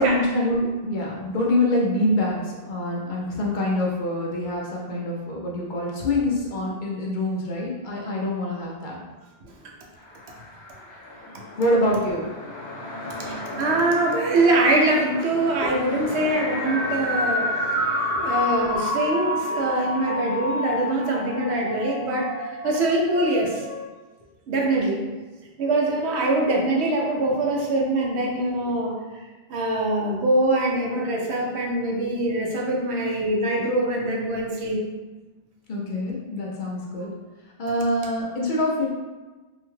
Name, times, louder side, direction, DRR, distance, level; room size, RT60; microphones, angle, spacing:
voice 1, 0.0-9.0 11.6-12.3 15.6-15.7 18.1-18.2 35.7-37.1 37.6-38.9, left 1 dB, 55° left, -3 dB, 0.6 m, -25 dB
sound 1, 9.9-21.3, left 1 dB, 80° left, 1.0 m, -37 dB
voice 2, 13.2-17.5 18.2-22.3 22.6-23.6 24.5-25.1 25.6-29.0 29.5-34.8, right 2 dB, 90° right, -1 dB, 0.9 m, -23 dB
sound 2, 16.3-23.9, left 1 dB, 60° right, 0.8 m, -28 dB
2.7 x 2.2 x 3.0 m, 1.2 s
omnidirectional pair, 1.1 m